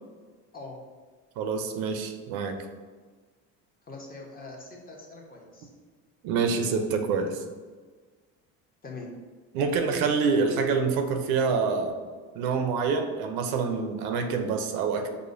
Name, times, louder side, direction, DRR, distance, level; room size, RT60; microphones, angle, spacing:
voice 1, 1.4-2.6 6.2-7.4 9.5-12.0 12.4-15.1, right 5 dB, 75° right, 5 dB, 0.6 m, -26 dB
voice 2, 3.9-5.7 8.8-9.1, left 3 dB, 25° left, -1 dB, 0.7 m, -42 dB
4.9 x 2.1 x 2.5 m, 1.5 s
supercardioid pair, 105°, 37 cm